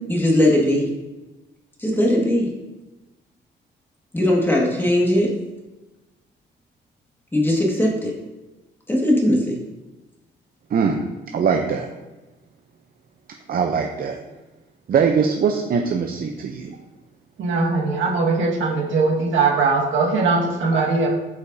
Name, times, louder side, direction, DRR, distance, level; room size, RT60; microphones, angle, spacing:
voice 1, 0.1-0.9 1.8-2.5 4.1-5.3 7.3-8.1 8.9-9.6, left 1 dB, 10° left, -3 dB, 1.8 m, -19 dB
voice 2, 10.7-11.0 11.3-11.9 13.5-14.2 14.9-16.8, right 6 dB, 45° right, 4 dB, 0.6 m, -21 dB
voice 3, 17.4-21.1, right 4 dB, 75° right, -2 dB, 1.6 m, -20 dB
8.2 x 5.1 x 2.7 m, 1.1 s
cardioid pair, 90°, 20 cm